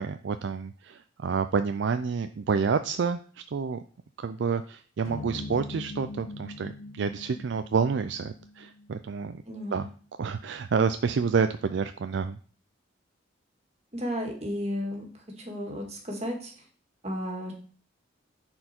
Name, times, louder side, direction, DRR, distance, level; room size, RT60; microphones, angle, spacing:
voice 1, 0.0-3.2 3.5-3.8 4.2-9.4 9.7-9.9 10.2-12.4, right 5 dB, 60° right, 9 dB, 0.4 m, -28 dB
sound 1, 5.0-9.4, left 2 dB, 75° left, 2.0 m, -42 dB
voice 2, 9.5-9.9 13.9-16.5 17.0-17.5, equal, 30° right, 1 dB, 1.9 m, -33 dB
10.0 x 4.4 x 4.4 m, 0.42 s
head